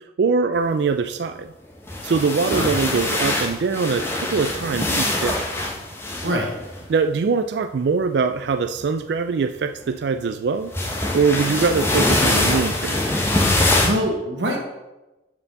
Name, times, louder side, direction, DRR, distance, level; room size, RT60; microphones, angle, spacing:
voice 1, 0.2-1.5 2.0-5.4 6.9-10.7 11.1-13.0, right 5 dB, 65° right, 8 dB, 0.4 m, -22 dB
sound 1, 1.8-6.8 8.5-8.8 10.7-13.9, left 1 dB, 15° left, 1.1 m, -23 dB
voice 2, 2.4-2.8 6.2-6.6 13.8-14.6, equal, 80° right, 0 dB, 1.4 m, -24 dB
6.9 x 4.9 x 6.7 m, 1.0 s
head